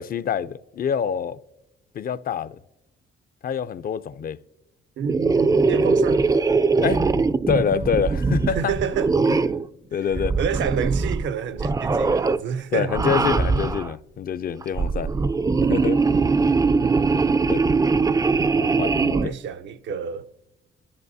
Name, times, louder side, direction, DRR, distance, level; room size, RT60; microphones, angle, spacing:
voice 1, 0.0-1.4 1.9-2.6 3.4-4.4 6.8-8.7 9.3-9.6 9.9-10.4 12.7-15.1 15.6-16.0 17.5-17.6 18.5-19.3, left 7 dB, 45° left, 0.5 m, -26 dB
sound 1, 5.0-9.7 10.1-11.3 11.6-12.4 12.9-13.9 14.6-19.3, right 4 dB, 20° right, 0.3 m, -21 dB
voice 2, 5.0-6.3 8.5-9.1 10.4-13.0 16.8-17.2 19.1-20.3, right 7 dB, 70° right, 0.6 m, -29 dB
21.5 x 13.0 x 2.7 m
cardioid pair, 90°, 20 cm